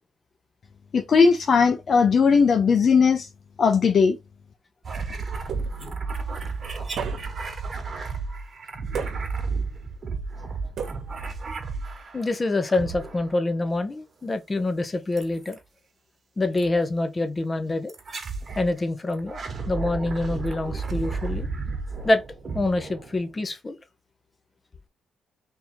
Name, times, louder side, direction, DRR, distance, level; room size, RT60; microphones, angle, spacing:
voice 1, 0.9-3.3 3.6-4.2, left 5 dB, 50° left, 0.5 m, -18 dB
sound 1, 4.8-12.3 12.7-13.5 15.2-15.6 16.6-16.7 17.9-18.7 19.1-23.5, right 4 dB, 40° right, 1.3 m, -33 dB
sound 2, 5.5-6.1 7.0-7.6 8.9-9.6 10.8-11.4, right 6 dB, 65° right, 1.1 m, -35 dB
voice 2, 12.1-15.6 16.4-17.9 18.6-19.4 19.7-21.5 22.0-22.2 22.5-23.8, left 2 dB, 25° left, 0.8 m, -26 dB
3.7 x 2.8 x 4.4 m
cardioid pair, 90°, 0 cm